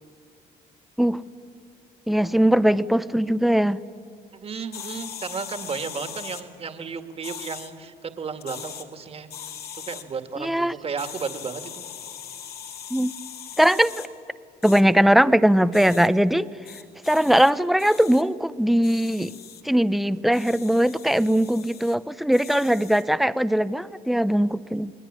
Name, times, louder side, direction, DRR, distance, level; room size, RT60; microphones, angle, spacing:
voice 1, 2.1-3.8 10.4-10.7 12.9-13.1 13.6-14.1 14.6-16.5 17.1-19.3 19.6-24.9, equal, ahead, 15 dB, 0.7 m, -20 dB
voice 2, 4.3-9.3 9.9-11.8, right 5 dB, 35° right, 8 dB, 2.0 m, -33 dB
sound 1, 4.7-6.4 7.2-7.7 8.4-8.8 9.3-10.0 11.0-14.1 14.6-14.8 15.7-16.1 16.6-17.5 17.8-18.2 18.8-19.6 20.3-21.9 22.3-23.1, left 8 dB, 70° left, 2.5 m, -40 dB
29.0 x 21.0 x 9.9 m, 2.3 s
cardioid pair, 110°, 17 cm